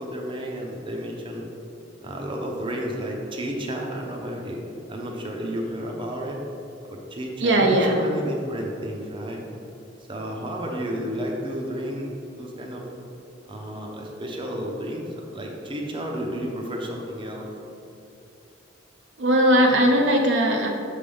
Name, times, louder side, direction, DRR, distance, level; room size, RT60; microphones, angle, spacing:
voice 1, 0.0-1.5 2.0-6.4 6.9-9.4 10.1-12.8 13.5-17.5, equal, 30° right, 0 dB, 0.7 m, -32 dB
voice 2, 7.4-8.0 19.2-20.7, right 1 dB, 70° right, 2 dB, 0.6 m, -19 dB
6.6 x 3.4 x 5.4 m, 2.6 s
head